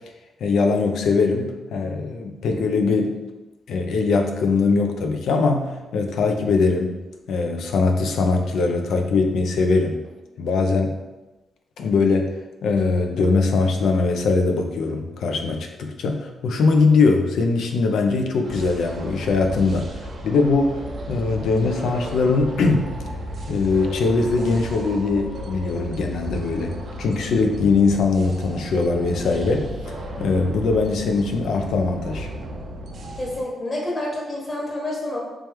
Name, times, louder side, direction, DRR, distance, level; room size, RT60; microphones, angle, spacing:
voice 1, 0.4-3.2 3.7-7.0 7.3-10.0 10.4-11.0 11.8-12.3 12.6-20.7 21.1-22.9 23.5-29.7 30.2-32.3, left 4 dB, 85° left, 4 dB, 0.5 m, -21 dB
sound 1, 18.4-33.4, right 1 dB, 60° right, 0.5 m, -34 dB
voice 2, 33.1-35.2, left 1 dB, 35° left, -3 dB, 1.2 m, -28 dB
3.2 x 3.0 x 3.4 m, 1.1 s
cardioid pair, 85°, 0 cm